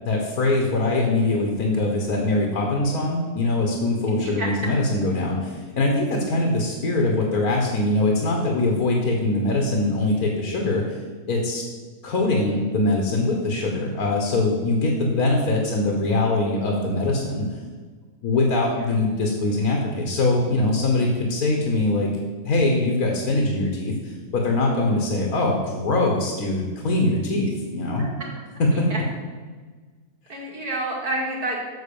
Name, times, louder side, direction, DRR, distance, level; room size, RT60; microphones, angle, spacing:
voice 1, 0.0-11.0 11.3-11.6 12.0-17.4 18.2-22.1 22.4-28.1 28.6-28.9, left 2 dB, 70° left, 0 dB, 1.7 m, -22 dB
voice 2, 4.2-4.5 18.7-19.0 27.9-28.3 28.7-29.0 30.3-31.6, right 1 dB, 70° right, -3 dB, 2.7 m, -30 dB
8.5 x 6.0 x 7.0 m, 1.4 s
omnidirectional pair, 1.7 m